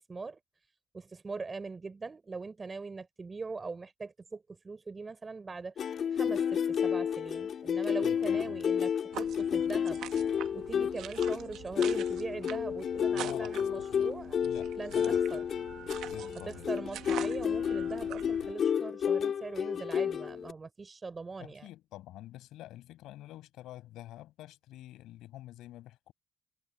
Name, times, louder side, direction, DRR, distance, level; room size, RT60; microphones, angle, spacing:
voice 1, 0.1-0.4 0.9-10.0 10.5-14.4 14.8-15.4 16.7-21.7, right 4 dB, 30° right, 5.3 m, -41 dB
sound 1, 5.8-20.5, left 8 dB, 60° left, 3.1 m, -31 dB
voice 2, 8.0-8.6 13.1-14.1 14.4-15.2 16.0-16.7 21.4-26.1, left 15 dB, 90° left, 8.0 m, -48 dB
sound 2, 9.1-18.5, right 12 dB, 85° right, 1.2 m, -45 dB
cardioid pair, 90°, 0 cm